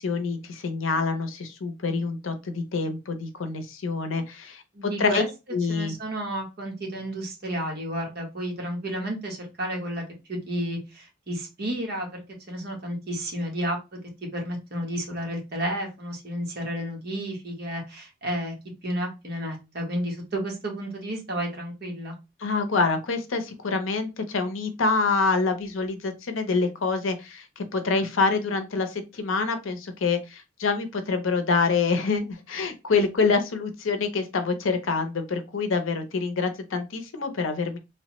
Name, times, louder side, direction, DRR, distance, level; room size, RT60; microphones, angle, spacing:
voice 1, 0.0-5.9 22.4-37.8, left 4 dB, 80° left, 0.6 m, -26 dB
voice 2, 4.7-5.3 5.7-12.2 12.5-14.0 14.3-18.5 18.8-22.1, right 1 dB, 50° right, 1.1 m, -31 dB
3.2 x 2.1 x 2.9 m
head